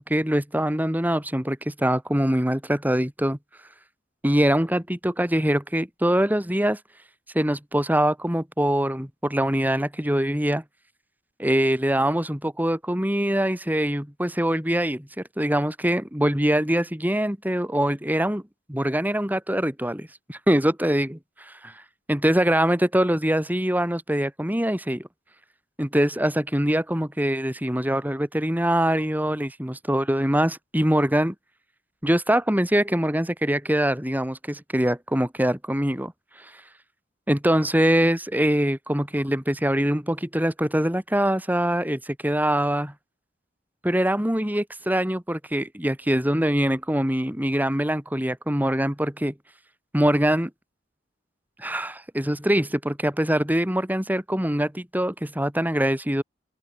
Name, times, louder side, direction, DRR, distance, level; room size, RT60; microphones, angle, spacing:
voice 1, 0.0-3.4 4.2-6.8 7.3-10.6 11.4-18.4 18.7-21.2 21.5-21.7 22.1-25.1 25.8-31.3 32.0-36.1 37.3-42.9 43.8-49.3 49.9-50.5 51.6-56.2, right 1 dB, 10° right, 3.3 m, -23 dB
head